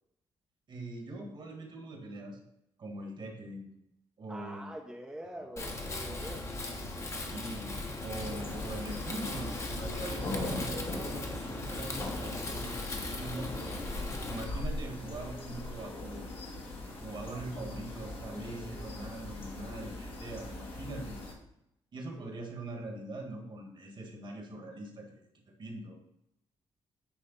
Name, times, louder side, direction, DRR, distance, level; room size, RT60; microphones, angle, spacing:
voice 1, 0.7-2.4 2.8-3.7 4.2-4.7 7.2-13.8 14.2-16.3 17.0-21.2 21.9-25.3 25.6-26.0, right 1 dB, 50° right, 2 dB, 1.6 m, -42 dB
voice 2, 4.3-6.5 22.2-22.9, right 1 dB, 5° right, 1 dB, 0.7 m, -45 dB
Wind, 5.6-14.4, left 2 dB, 30° left, 1.0 m, -38 dB
sound 1, 8.1-21.3, left 2 dB, 60° left, 1.5 m, -41 dB
8.7 x 3.3 x 4.0 m, 0.81 s
cardioid pair, 95°, 10 cm